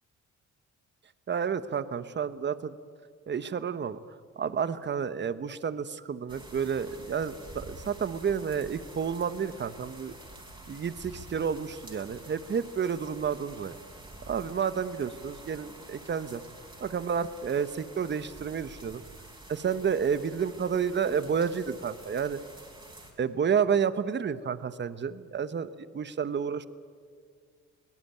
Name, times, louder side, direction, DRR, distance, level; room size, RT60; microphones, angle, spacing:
voice 1, 1.3-2.7 3.3-4.0 4.4-10.1 10.7-13.8 14.3-16.4 16.8-19.0 19.5-22.4 23.2-26.7, right 7 dB, 35° right, 14 dB, 1.0 m, -30 dB
sound 1, 6.3-23.1, right 2 dB, 15° right, 5.5 m, -48 dB
23.5 x 18.5 x 9.4 m, 2.1 s
cardioid pair, 90°, 30 cm